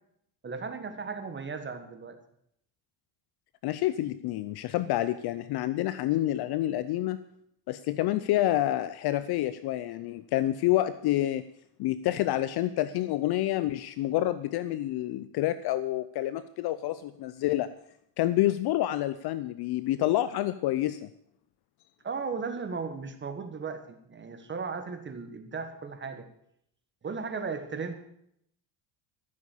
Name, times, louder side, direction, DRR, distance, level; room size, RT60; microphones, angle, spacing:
voice 1, 0.4-2.2 22.0-26.3 27.0-27.9, right 5 dB, 20° right, 8 dB, 1.5 m, -36 dB
voice 2, 3.6-7.2 7.7-11.4 11.8-17.7 18.2-21.1, left 14 dB, 50° left, 14 dB, 0.6 m, -28 dB
14.5 x 7.3 x 8.3 m, 0.72 s
cardioid pair, 140°, 49 cm